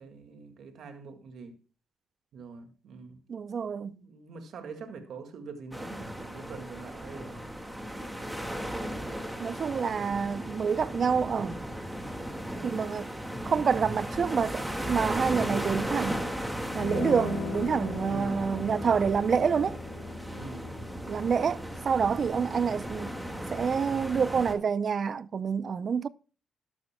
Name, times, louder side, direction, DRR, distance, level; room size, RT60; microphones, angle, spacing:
voice 1, 0.0-1.6 2.3-3.2 3.8-7.5 18.0-18.4 20.3-20.7 22.2-22.5, right 4 dB, 65° right, 1.9 m, -44 dB
voice 2, 3.3-3.9 9.4-11.6 12.6-13.1 13.4-16.2 16.7-19.8 21.1-23.2 23.5-26.1, right 6 dB, 45° right, 0.5 m, -27 dB
sound 1, 5.7-24.5, equal, 5° right, 1.9 m, -36 dB
sound 2, 16.7-24.4, left 3 dB, 75° left, 4.7 m, -40 dB
13.0 x 12.0 x 2.2 m
cardioid pair, 90°, 0 cm